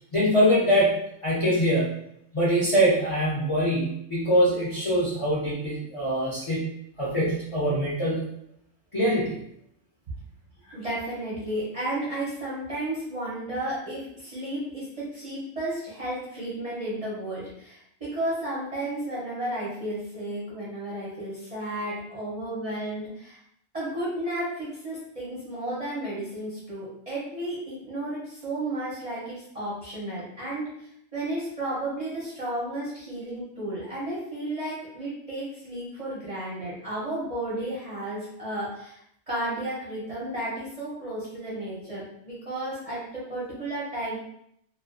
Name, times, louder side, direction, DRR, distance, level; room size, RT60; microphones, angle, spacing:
voice 1, 0.1-0.9 1.2-1.9 2.3-6.7 7.0-8.3 8.9-9.4, equal, 45° left, -8 dB, 0.4 m, -23 dB
voice 2, 10.7-23.4 23.7-39.0 39.3-44.2, right 1 dB, 40° right, -9 dB, 0.5 m, -33 dB
2.3 x 2.2 x 2.4 m, 0.73 s
omnidirectional pair, 1.4 m